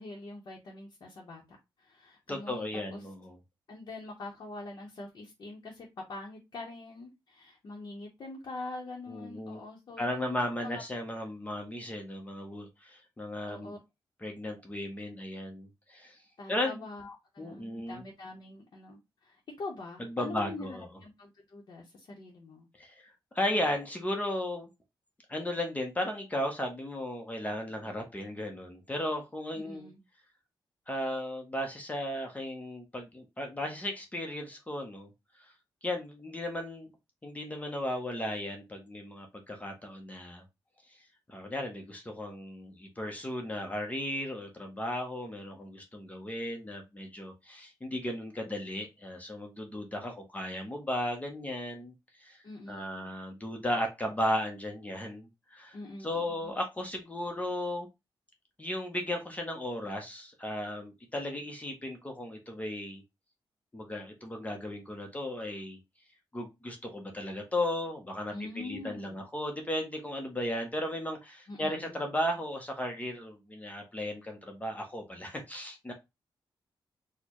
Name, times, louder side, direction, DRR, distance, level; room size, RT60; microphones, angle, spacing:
voice 1, 0.0-1.4 1.8-3.1 3.7-10.8 13.4-13.8 16.4-22.7 29.6-30.0 52.4-53.1 55.7-56.5 68.3-69.3 71.5-72.0, left 2 dB, 55° left, -2 dB, 0.7 m, -44 dB
voice 2, 2.3-3.4 9.1-9.6 10.0-13.7 14.2-16.2 16.5-16.8 17.4-18.0 20.0-20.9 22.8-24.7 25.3-29.9 30.9-35.1 35.4-35.5 35.8-36.9 37.2-40.4 41.3-51.9 52.2-52.4 52.7-57.9 58.6-63.0 63.7-65.8 66.3-75.9, left 1 dB, 15° left, 3 dB, 0.6 m, -35 dB
4.3 x 2.1 x 2.9 m, 0.22 s
wide cardioid pair, 140°, 9 cm